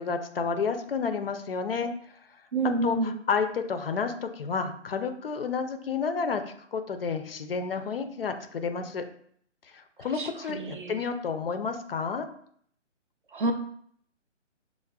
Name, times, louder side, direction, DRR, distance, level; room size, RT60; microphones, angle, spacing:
voice 1, 0.0-1.9 2.8-6.4 6.7-9.1 9.7-12.3, left 5 dB, 50° left, 7 dB, 0.4 m, -30 dB
voice 2, 2.5-3.1 10.1-11.0 13.3-13.5, right 2 dB, 45° right, 6 dB, 0.4 m, -29 dB
5.8 x 2.1 x 2.2 m, 0.62 s
figure-of-eight pair, 145°, 37 cm